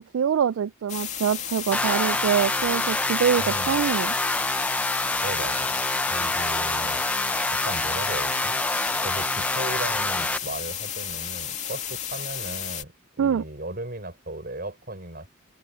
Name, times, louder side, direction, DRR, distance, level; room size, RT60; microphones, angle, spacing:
voice 1, 0.0-4.1 13.2-13.4, right 8 dB, 70° right, 0.3 m, -24 dB
sound 1, 0.9-12.8, left 9 dB, 35° left, 2.6 m, -33 dB
sound 2, 1.7-10.4, left 2 dB, 5° left, 0.6 m, -26 dB
voice 2, 3.4-4.0 5.2-5.8 6.1-7.2 7.5-8.6 9.0-15.3, right 1 dB, 45° right, 5.7 m, -36 dB
head